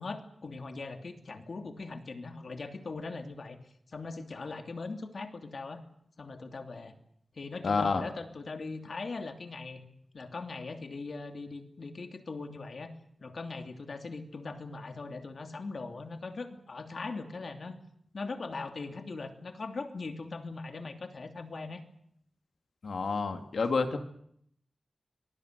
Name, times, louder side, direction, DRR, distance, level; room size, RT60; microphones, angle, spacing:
voice 1, 0.0-3.6 3.9-5.8 6.2-6.9 7.3-9.8 10.1-12.9 13.2-17.8 18.1-21.8, left 3 dB, 65° left, 6 dB, 2.8 m, -40 dB
voice 2, 7.6-8.0 22.8-24.0, left 4 dB, 85° left, 7 dB, 2.4 m, -29 dB
25.0 x 19.5 x 8.1 m, 0.70 s
wide cardioid pair, 110°, 0 cm